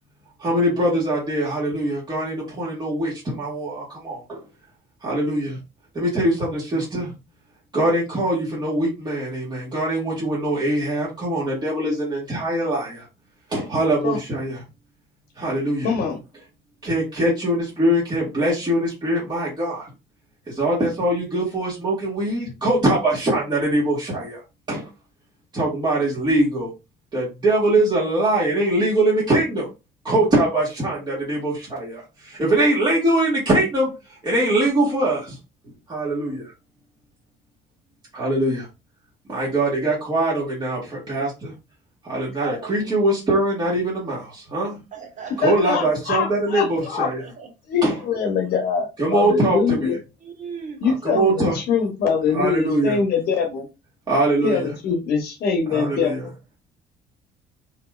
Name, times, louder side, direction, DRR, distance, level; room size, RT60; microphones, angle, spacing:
voice 1, 0.4-4.4 5.0-5.6 5.9-7.1 7.7-13.0 13.5-14.6 15.4-15.9 16.8-19.9 20.5-24.4 24.7-24.9 25.5-26.7 27.1-29.7 30.0-33.9 34.2-35.4 35.9-36.4 38.1-38.7 39.3-41.5 42.0-44.8 45.4-47.2 47.8-47.9 49.0-49.6 51.0-51.5 52.3-53.0 54.1-54.6 55.7-56.2, right 1 dB, 25° right, 1.6 m, -22 dB
voice 2, 15.8-16.2 45.4-47.1 47.7-50.0 50.8-53.7 54.4-56.3, left 5 dB, 65° left, 0.9 m, -23 dB
voice 3, 42.4-42.9 44.9-45.7 47.4-47.5 50.2-50.8, right 5 dB, 45° right, 1.2 m, -36 dB
3.4 x 2.9 x 2.3 m
cardioid pair, 110°, 17 cm